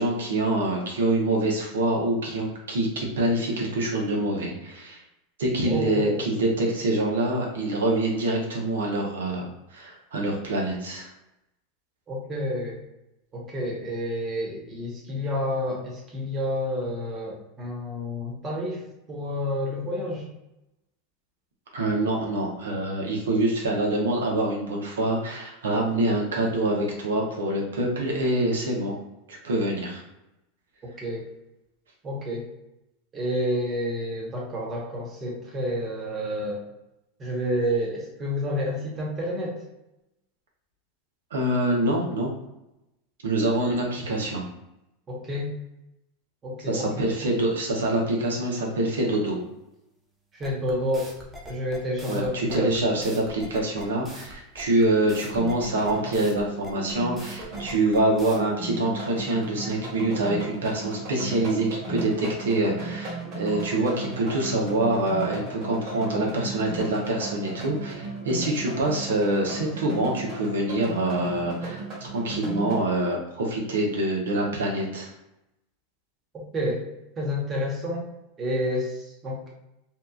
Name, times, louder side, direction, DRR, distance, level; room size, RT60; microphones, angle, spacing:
voice 1, 0.0-5.0 5.4-11.1 21.7-29.0 29.3-30.0 41.3-42.3 43.2-44.4 46.7-49.4 52.1-75.1, right 1 dB, 85° right, -1 dB, 0.8 m, -25 dB
voice 2, 5.6-6.2 12.1-12.8 13.3-20.3 31.0-31.2 32.0-32.4 33.1-36.6 37.2-39.6 45.1-45.5 46.4-47.0 50.3-51.1 51.5-52.9 76.5-76.8 77.2-78.1 78.4-79.5, equal, 30° right, -2 dB, 1.0 m, -29 dB
sound 1, 50.4-58.4, equal, 10° right, 0.8 m, -43 dB
sound 2, 55.3-72.8, right 3 dB, 50° right, 1.4 m, -36 dB
2.8 x 2.3 x 2.3 m, 0.90 s
hypercardioid pair, 100°, 0 cm